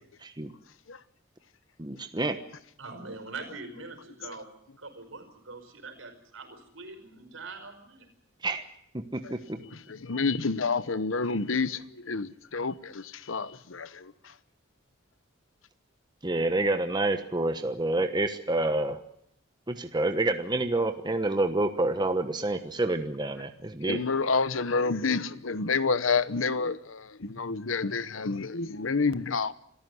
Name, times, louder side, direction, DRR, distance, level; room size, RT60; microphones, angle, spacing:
voice 1, 1.8-2.4 8.4-8.7 8.9-9.6 16.2-19.0 19.7-24.0, right 2 dB, 20° right, 1.2 m, -28 dB
voice 2, 2.8-4.5 4.8-8.1, right 3 dB, 75° right, 5.1 m, -43 dB
voice 3, 9.7-14.3 23.9-29.5, left 4 dB, 75° left, 1.0 m, -29 dB
26.5 x 14.0 x 9.5 m
head